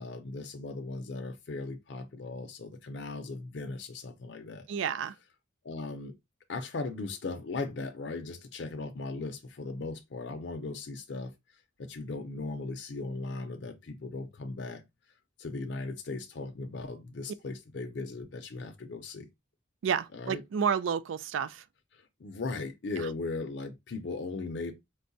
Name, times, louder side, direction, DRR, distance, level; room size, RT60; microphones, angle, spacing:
voice 1, 0.0-4.7 5.6-6.1 6.5-11.3 11.8-14.8 15.4-19.3 20.1-20.4 21.9-24.7, left 3 dB, 65° left, 0.5 m, -38 dB
voice 2, 4.7-5.1 19.8-21.6 23.0-23.1, right 7 dB, 90° right, 0.4 m, -30 dB
4.6 x 2.1 x 2.6 m
head